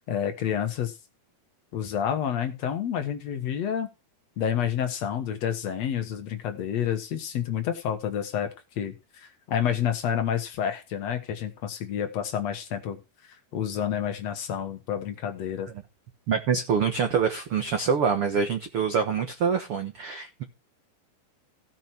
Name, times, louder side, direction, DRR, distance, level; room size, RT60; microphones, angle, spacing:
voice 1, 0.1-0.9 1.7-3.9 4.4-8.5 8.8-13.0 13.5-15.7, left 9 dB, 60° left, 7 dB, 1.9 m, -29 dB
voice 2, 16.3-20.4, right 6 dB, 70° right, 6 dB, 1.3 m, -25 dB
16.5 x 6.0 x 4.4 m, 0.28 s
omnidirectional pair, 4.5 m